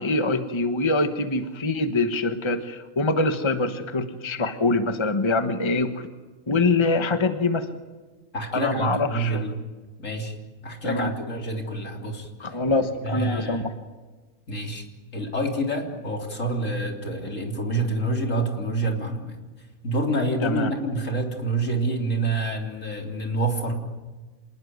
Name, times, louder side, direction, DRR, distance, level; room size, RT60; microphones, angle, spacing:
voice 1, 0.0-6.1 6.5-7.7 8.5-9.5 10.8-11.1 12.4-13.7 20.4-20.7, left 2 dB, 20° left, 8 dB, 1.3 m, -24 dB
voice 2, 8.3-9.6 10.0-10.4 10.6-12.6 13.0-13.7 14.5-14.9 15.1-19.4 19.8-23.7, right 2 dB, 65° left, 2 dB, 3.9 m, -27 dB
26.5 x 20.0 x 9.5 m, 1.3 s
omnidirectional pair, 1.5 m